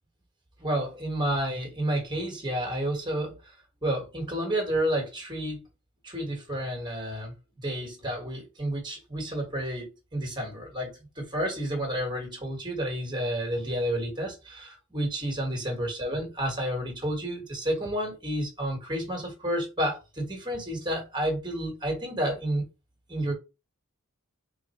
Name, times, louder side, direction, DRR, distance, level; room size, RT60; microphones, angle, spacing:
voice 1, 0.6-3.5 3.8-5.6 6.0-22.7 23.1-23.3, right 1 dB, 20° right, 1.4 m, -30 dB
3.3 x 2.5 x 4.1 m
head